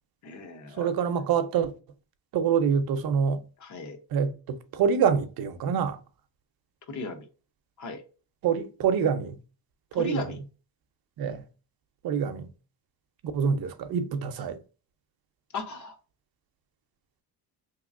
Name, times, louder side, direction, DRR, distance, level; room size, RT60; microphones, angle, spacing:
voice 1, 0.2-0.9 3.6-4.0 6.9-7.3 7.8-8.0 9.9-10.4 15.5-16.0, left 3 dB, 50° left, 0.8 m, -36 dB
voice 2, 0.8-1.7 2.3-3.4 4.1-6.0 8.4-9.4 9.9-10.2 11.2-11.4 12.0-12.5 13.3-14.6, right 7 dB, 65° right, 0.6 m, -26 dB
3.2 x 3.0 x 2.4 m
cardioid pair, 145°, 40 cm